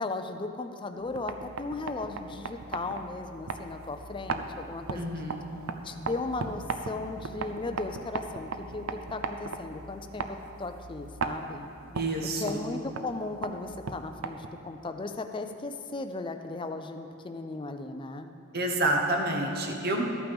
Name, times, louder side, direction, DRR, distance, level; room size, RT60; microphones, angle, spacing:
voice 1, 0.0-5.1 5.8-11.7 12.2-18.3, left 3 dB, 25° left, 6 dB, 0.4 m, -36 dB
sound 1, 1.0-14.7, right 4 dB, 80° right, 0.5 m, -38 dB
voice 2, 4.9-5.4 11.9-12.6 18.5-20.0, right 1 dB, 50° right, 2 dB, 0.9 m, -28 dB
13.0 x 8.9 x 3.5 m, 2.6 s
head